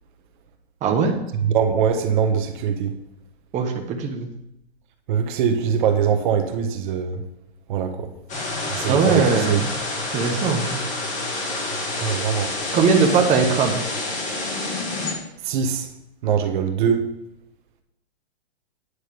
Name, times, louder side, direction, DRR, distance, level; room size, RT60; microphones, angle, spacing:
voice 1, 0.8-1.1 3.5-4.3 8.9-9.6 10.1-10.8 12.7-13.7, right 5 dB, 20° right, 2 dB, 1.2 m, -20 dB
voice 2, 1.3-2.9 5.1-7.2 7.7-8.1 8.7-9.7 12.0-12.5 15.4-15.9 16.2-17.1, right 7 dB, 50° right, 6 dB, 1.3 m, -22 dB
sound 1, 8.3-15.1, left 2 dB, 25° left, 2.1 m, -28 dB
9.9 x 6.2 x 5.3 m, 0.85 s
hypercardioid pair, 135°, 32 cm